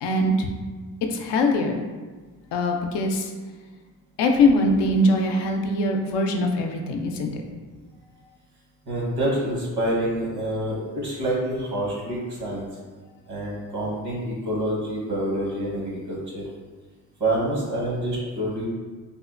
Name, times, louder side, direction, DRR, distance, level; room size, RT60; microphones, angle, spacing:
voice 1, 0.0-0.5 1.1-1.8 2.5-3.3 4.2-7.3, left 2 dB, 80° left, 3 dB, 0.5 m, -22 dB
voice 2, 8.8-12.7 13.3-16.4 17.2-18.7, right 1 dB, 70° right, -5 dB, 1.3 m, -27 dB
3.6 x 2.1 x 2.4 m, 1.4 s
supercardioid pair, 55°, 41 cm